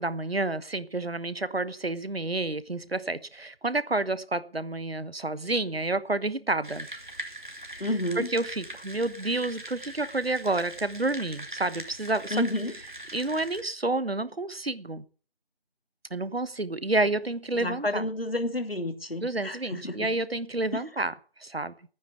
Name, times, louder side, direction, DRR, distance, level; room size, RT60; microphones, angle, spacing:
voice 1, 0.0-6.9 8.2-12.4 13.1-15.0 16.1-18.0 19.2-21.1 21.4-21.7, right 2 dB, 75° right, 16 dB, 1.2 m, -29 dB
sound 1, 6.6-13.6, right 1 dB, 50° right, 2.7 m, -42 dB
voice 2, 7.8-8.3 12.3-12.8 17.6-20.1 20.7-20.9, left 1 dB, 70° left, 9 dB, 2.4 m, -30 dB
11.0 x 9.5 x 8.0 m, 0.41 s
figure-of-eight pair, 180°, 31 cm